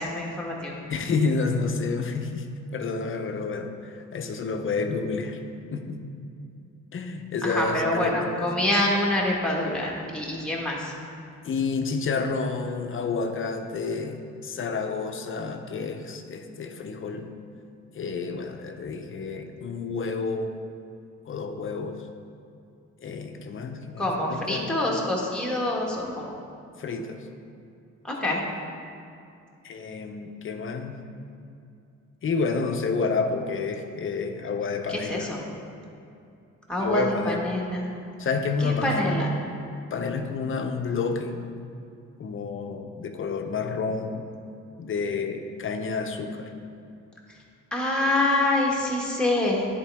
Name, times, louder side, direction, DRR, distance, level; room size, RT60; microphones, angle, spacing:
voice 1, 0.0-0.7 7.4-10.9 24.0-26.4 28.0-28.5 34.9-35.4 36.7-37.9 38.6-39.3 47.7-49.7, left 1 dB, 5° left, -3 dB, 1.5 m, -26 dB
voice 2, 0.9-5.4 5.7-6.0 6.9-8.5 11.4-17.3 17.9-20.5 21.3-22.0 23.0-24.7 26.8-27.2 29.6-31.0 32.2-35.3 36.8-37.5 38.2-39.2 39.9-41.4 42.2-44.3 44.8-46.5, left 4 dB, 45° left, 6 dB, 0.6 m, -29 dB
10.0 x 4.3 x 3.4 m, 2.5 s
cardioid pair, 90°, 30 cm